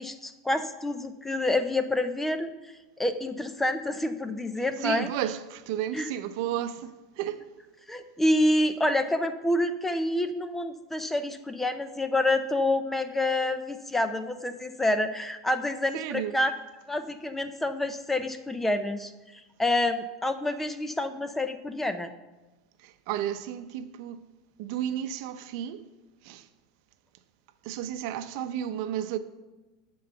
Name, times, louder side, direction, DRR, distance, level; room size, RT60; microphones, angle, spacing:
voice 1, 0.0-2.5 3.0-5.1 5.9-6.1 7.9-16.5 16.9-19.1 19.6-22.1, left 1 dB, 10° left, 0.6 m, -27 dB
voice 2, 4.8-7.4 15.9-16.4 22.8-24.2 24.6-25.9 26.2-26.5 27.6-29.2, right 11 dB, 65° right, 0.7 m, -33 dB
10.0 x 3.9 x 6.9 m
supercardioid pair, 110°, 3 cm